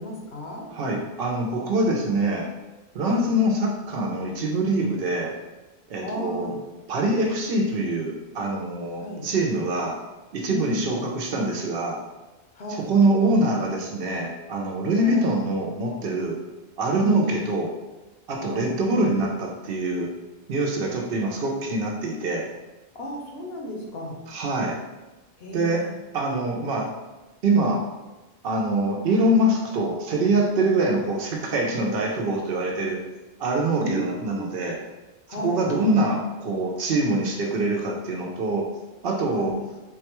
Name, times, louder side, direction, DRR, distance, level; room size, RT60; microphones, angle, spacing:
voice 1, 0.0-0.7 3.0-3.2 6.0-6.6 9.0-9.3 10.5-10.8 12.6-12.9 15.0-15.3 17.0-17.3 18.4-18.7 22.9-24.2 25.4-25.9 29.1-29.3 33.7-34.1 34.3-34.5 35.3-35.9 39.3-39.6, equal, 70° left, -1 dB, 0.9 m, -33 dB
voice 2, 0.7-2.5 2.9-5.3 5.9-6.5 6.9-10.0 10.3-12.0 12.8-16.4 16.8-17.7 18.3-20.1 20.5-22.5 24.3-24.8 25.5-25.9 26.1-26.9 27.4-27.9 28.4-33.0 33.4-34.8 35.4-38.7 39.0-39.5, right 2 dB, 65° right, 0 dB, 0.7 m, -24 dB
3.8 x 2.2 x 2.9 m, 1.1 s
omnidirectional pair, 1.1 m